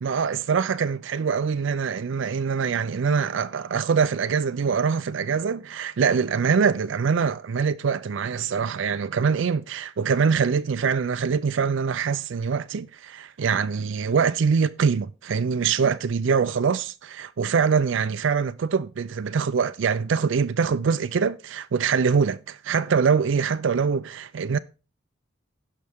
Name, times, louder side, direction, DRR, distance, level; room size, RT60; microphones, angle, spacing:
voice 1, 0.0-24.6, right 6 dB, 75° right, 0.4 m, -24 dB
17.0 x 5.6 x 3.6 m
head